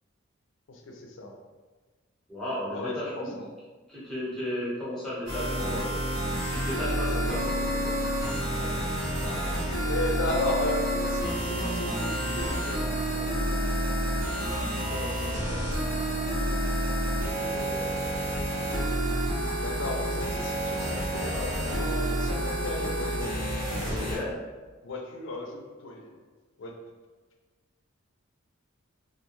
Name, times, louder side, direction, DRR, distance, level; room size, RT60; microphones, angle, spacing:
voice 1, 0.7-1.3 2.7-3.5 8.3-9.5 9.9-12.8 13.1-13.4 14.9-15.6 17.4-18.2 19.6-23.4 24.8-26.1 26.6-26.7, left 1 dB, 60° left, 1 dB, 0.4 m, -35 dB
voice 2, 2.3-3.3 3.9-6.0 6.4-7.9 23.9-24.3, left 1 dB, ahead, -9 dB, 0.8 m, -34 dB
sound 1, 5.3-24.2, equal, 85° right, 1.0 m, -29 dB
2.4 x 2.2 x 3.0 m, 1.3 s
head